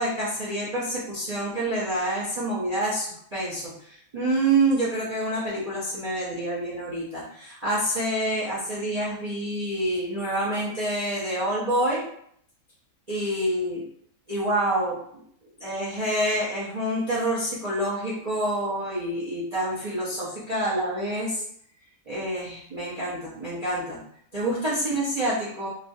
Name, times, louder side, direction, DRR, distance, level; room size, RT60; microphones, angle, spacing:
voice 1, 0.0-12.0 13.1-13.8 14.3-15.2 15.6-21.4 22.1-24.0 24.3-25.7, right 1 dB, 70° right, -8 dB, 0.3 m, -27 dB
3.0 x 2.4 x 2.6 m, 0.67 s
omnidirectional pair, 1.8 m